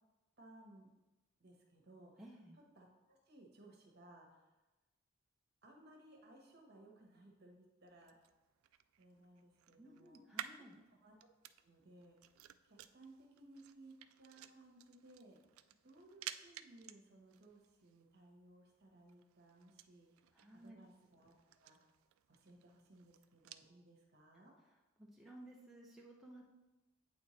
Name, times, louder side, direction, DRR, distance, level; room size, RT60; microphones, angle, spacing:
voice 1, 0.4-0.9 1.4-4.5 5.6-8.1 9.0-10.2 11.0-11.1 11.6-12.2 12.6-15.4 15.8-20.2 20.5-21.3 21.6-21.9 22.3-24.5, right 2 dB, 50° right, 0 dB, 1.2 m, -61 dB
voice 2, 2.2-2.6 9.8-10.8 20.3-20.8 25.0-26.4, right 1 dB, ahead, -4 dB, 0.6 m, -56 dB
sound 1, 7.9-23.7, right 11 dB, 85° right, 0.3 m, -55 dB
8.4 x 4.4 x 3.2 m, 1.1 s
head